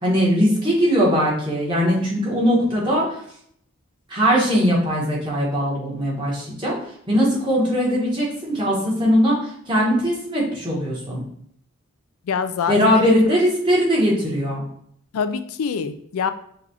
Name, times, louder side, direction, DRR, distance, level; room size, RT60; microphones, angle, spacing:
voice 1, 0.0-3.1 4.1-6.8 7.1-11.2 12.7-14.7, equal, 20° right, -5 dB, 1.2 m, -20 dB
voice 2, 12.3-13.2 15.1-16.3, left 6 dB, 85° left, 11 dB, 0.4 m, -25 dB
5.8 x 2.4 x 2.9 m, 0.67 s
head